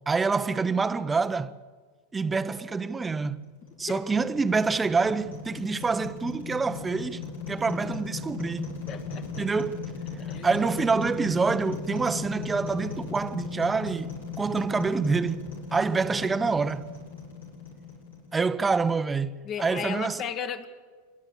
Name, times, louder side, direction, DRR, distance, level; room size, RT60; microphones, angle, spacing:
voice 1, 0.1-1.6 2.1-3.5 3.8-8.8 9.4-9.8 10.4-16.9 18.3-20.2, right 4 dB, 15° right, 0.8 m, -27 dB
sound 1, 3.4-18.6, left 5 dB, 85° left, 7.5 m, -38 dB
voice 2, 8.9-9.5 10.3-10.5 19.4-20.7, left 7 dB, 40° left, 1.7 m, -35 dB
26.5 x 11.5 x 8.6 m
figure-of-eight pair, 85°, 0 cm